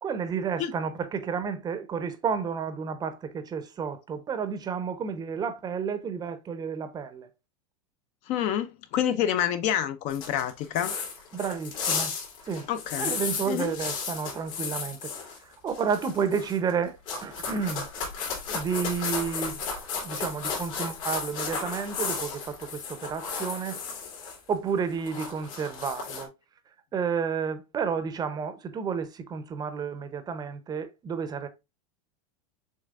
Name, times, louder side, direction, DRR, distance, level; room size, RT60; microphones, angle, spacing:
voice 1, 0.0-7.3 11.3-12.1 12.4-12.7 13.0-15.1 15.4-17.9 18.5-19.6 20.0-23.8 24.5-26.3 26.9-31.5, right 6 dB, 20° right, 0.6 m, -31 dB
voice 2, 8.3-10.9 12.7-13.1 13.5-13.7, left 10 dB, 40° left, 0.5 m, -28 dB
sound 1, 10.1-15.4 15.7-16.7 17.1-24.4 24.7-26.2, left 5 dB, 70° left, 2.6 m, -34 dB
6.4 x 3.3 x 2.4 m
supercardioid pair, 135°, 18 cm